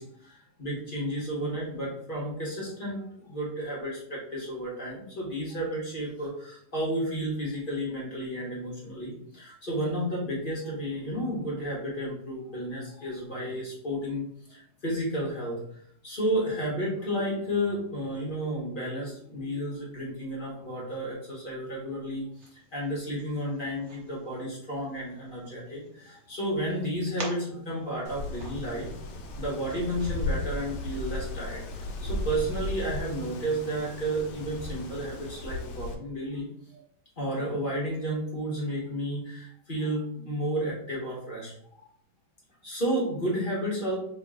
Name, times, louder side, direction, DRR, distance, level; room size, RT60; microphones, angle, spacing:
voice 1, 0.0-22.2 22.5-28.9 29.3-36.8 37.2-41.8 42.6-44.0, equal, 35° left, -5 dB, 1.0 m, -32 dB
sound 1, 22.3-30.1, right 3 dB, 55° right, 0.8 m, -48 dB
Wind, 28.1-35.9, left 2 dB, 75° left, 1.2 m, -35 dB
3.1 x 2.9 x 3.6 m, 0.67 s
omnidirectional pair, 2.1 m